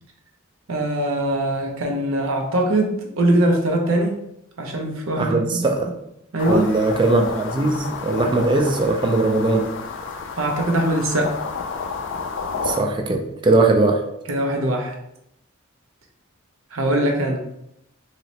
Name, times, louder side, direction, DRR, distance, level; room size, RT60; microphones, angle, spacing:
voice 1, 0.7-4.2 4.6-5.6 6.3-6.7 10.4-11.3 14.3-14.9 16.7-17.4, right 1 dB, 75° right, 1 dB, 0.7 m, -21 dB
voice 2, 5.2-5.9 6.5-9.7 12.6-14.1, right 2 dB, 25° right, 4 dB, 0.3 m, -20 dB
sound 1, 6.4-12.8, left 5 dB, 60° left, 0.3 m, -31 dB
3.0 x 2.8 x 2.8 m, 0.79 s
head